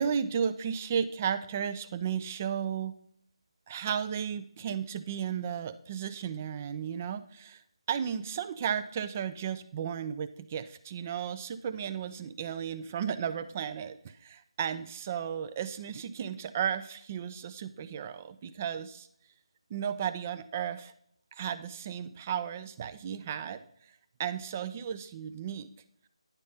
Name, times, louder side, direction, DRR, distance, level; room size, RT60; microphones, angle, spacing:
voice 1, 0.0-2.9 3.7-7.6 7.9-19.1 19.7-20.9 21.3-23.9 24.2-25.7, right 8 dB, 20° right, 12 dB, 0.3 m, -34 dB
10.0 x 3.6 x 5.4 m, 0.65 s
figure-of-eight pair, 165°, 3 cm